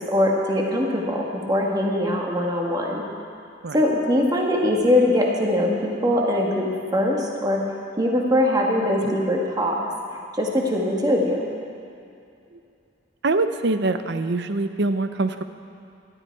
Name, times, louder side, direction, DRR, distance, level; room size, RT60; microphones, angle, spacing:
voice 1, 0.1-3.0 3.7-7.6 8.0-9.7 10.4-11.5, left 1 dB, 20° right, -1 dB, 1.8 m, -22 dB
voice 2, 13.2-15.4, right 2 dB, 65° right, 9 dB, 0.7 m, -24 dB
17.0 x 12.0 x 4.7 m, 2.5 s
head